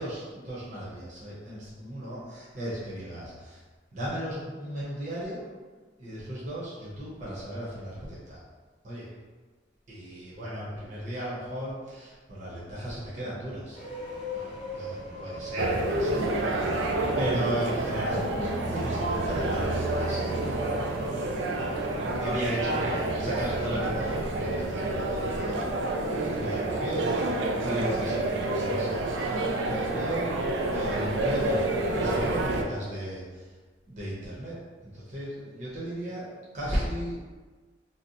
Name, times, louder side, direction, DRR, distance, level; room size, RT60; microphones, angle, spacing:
voice 1, 0.0-3.6 3.9-5.5 6.0-8.4 8.8-9.1 9.9-13.8 14.3-14.4 14.7-16.7 17.1-21.2 22.1-29.1 29.6-30.4 30.7-31.6 31.9-33.5 33.9-37.2, right 1 dB, 45° right, -8 dB, 0.8 m, -35 dB
sound 1, 13.7-23.0, left 1 dB, 25° left, 0.8 m, -42 dB
sound 2, 15.6-32.6, right 2 dB, 90° right, 0.4 m, -28 dB
2.7 x 2.1 x 3.8 m, 1.4 s
head